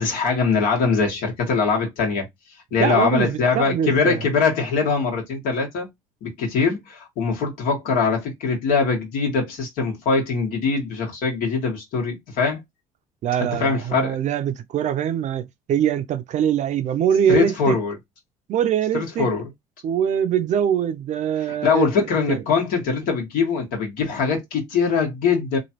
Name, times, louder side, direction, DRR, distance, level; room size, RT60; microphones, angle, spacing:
voice 1, 0.0-2.3 2.7-5.9 6.2-12.6 13.6-14.2 17.3-17.9 18.9-19.4 21.6-25.6, left 5 dB, 70° left, 1.4 m, -22 dB
voice 2, 2.8-4.2 13.2-17.8 18.5-19.3 19.8-21.9 22.3-22.4, right 9 dB, 55° right, 0.5 m, -23 dB
3.0 x 2.4 x 2.8 m
supercardioid pair, 80°, 15 cm